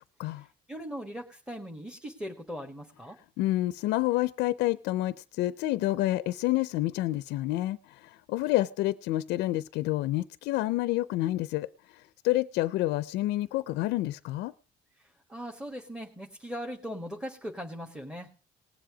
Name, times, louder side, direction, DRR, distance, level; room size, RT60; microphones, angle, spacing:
voice 1, 0.4-3.2 15.0-18.3, equal, 5° right, 1.5 m, -40 dB
voice 2, 3.4-11.7 12.2-14.5, left 16 dB, 90° left, 0.5 m, -28 dB
18.5 x 7.7 x 4.9 m
cardioid pair, 110°, 17 cm